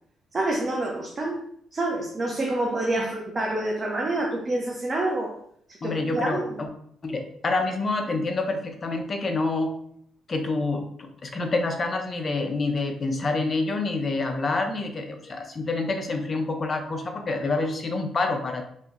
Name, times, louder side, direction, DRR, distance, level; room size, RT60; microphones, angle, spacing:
voice 1, 0.3-1.4 1.7-5.3 5.8-6.6, right 2 dB, 30° right, -1 dB, 0.7 m, -27 dB
voice 2, 5.8-6.7 7.0-9.7 10.3-18.6, left 3 dB, 35° left, 4 dB, 0.6 m, -27 dB
4.1 x 2.8 x 2.5 m, 0.67 s
cardioid pair, 90°, 0 cm